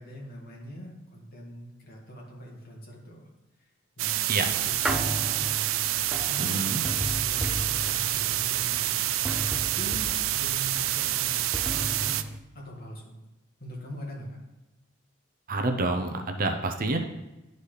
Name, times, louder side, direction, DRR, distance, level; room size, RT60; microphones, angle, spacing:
voice 1, 0.0-3.3 4.0-5.5 6.3-9.2 9.5-11.4 11.7-12.2 12.5-13.2 13.6-14.4, equal, 50° left, -2 dB, 1.9 m, -42 dB
sound 1, 4.0-12.2, right 13 dB, 75° right, 0.4 m, -28 dB
sound 2, 4.4-12.4, equal, 5° right, 0.4 m, -36 dB
voice 2, 6.4-6.8 15.5-17.0, right 2 dB, 45° right, 5 dB, 0.7 m, -28 dB
11.0 x 4.1 x 3.3 m, 1.0 s
head